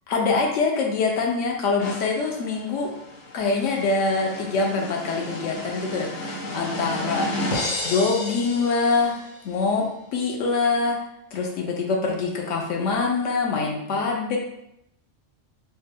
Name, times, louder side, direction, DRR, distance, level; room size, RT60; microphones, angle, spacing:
voice 1, 0.1-2.9 3.3-7.3 7.8-9.2 9.4-9.9 10.1-11.0 11.3-14.4, left 4 dB, 80° left, 0 dB, 0.9 m, -24 dB
sound 1, 1.8-9.4, left 2 dB, 55° left, 0.6 m, -32 dB
3.2 x 2.1 x 3.3 m, 0.80 s
omnidirectional pair, 1.3 m